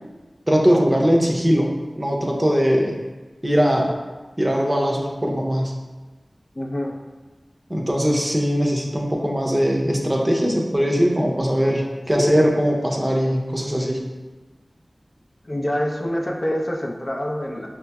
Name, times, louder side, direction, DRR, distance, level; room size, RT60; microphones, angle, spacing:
voice 1, 0.5-1.7 2.0-3.0 3.4-3.9 4.4-5.7 7.7-14.0, equal, 25° right, -1 dB, 0.6 m, -20 dB
voice 2, 6.6-7.0 12.1-12.4 15.4-17.7, equal, 45° left, -1 dB, 0.5 m, -25 dB
5.8 x 2.9 x 2.3 m, 1.3 s
wide cardioid pair, 50°, 0 cm